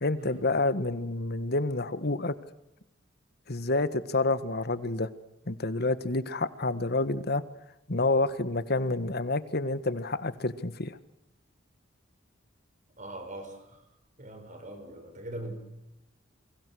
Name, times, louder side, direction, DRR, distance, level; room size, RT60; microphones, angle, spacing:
voice 1, 0.0-2.3 3.5-5.1 5.5-7.4 7.9-11.0, left 2 dB, 55° left, 13 dB, 1.5 m, -28 dB
voice 2, 13.0-13.5 14.2-15.6, right 1 dB, 40° right, 6 dB, 6.3 m, -41 dB
29.5 x 23.0 x 6.3 m, 0.88 s
head